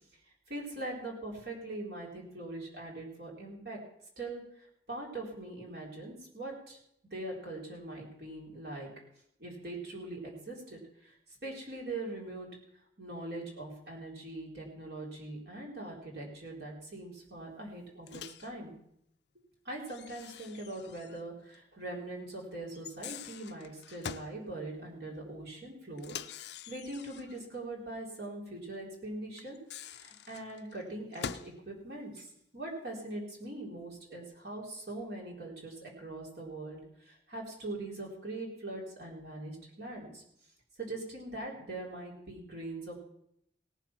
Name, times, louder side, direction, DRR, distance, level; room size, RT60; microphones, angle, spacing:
voice 1, 0.5-3.8 4.2-6.8 7.1-8.9 9.4-11.1 11.4-12.5 13.0-18.8 19.6-29.6 30.0-40.2 40.8-43.0, right 2 dB, 60° right, -2 dB, 3.9 m, -42 dB
Microwave oven, 18.1-18.5 19.9-21.3 21.5-21.6 22.7-24.4 26.0-27.4 29.4-31.6, left 7 dB, 70° left, 0.5 m, -45 dB
18.0 x 7.5 x 5.9 m, 0.74 s
head